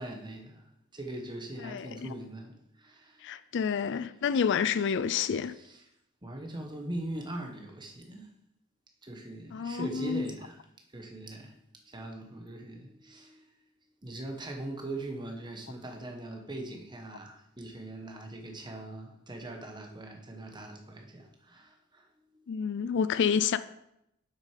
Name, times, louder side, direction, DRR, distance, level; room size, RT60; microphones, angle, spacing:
voice 1, 0.0-3.3 5.5-5.8 6.2-8.3 9.0-10.6 10.9-11.6 11.8-13.5 14.0-22.0 22.3-22.4, right 1 dB, 20° right, 1.2 m, -41 dB
voice 2, 3.2-5.5 9.5-10.3 22.5-23.6, left 7 dB, 55° left, 0.4 m, -29 dB
7.7 x 6.4 x 5.0 m
head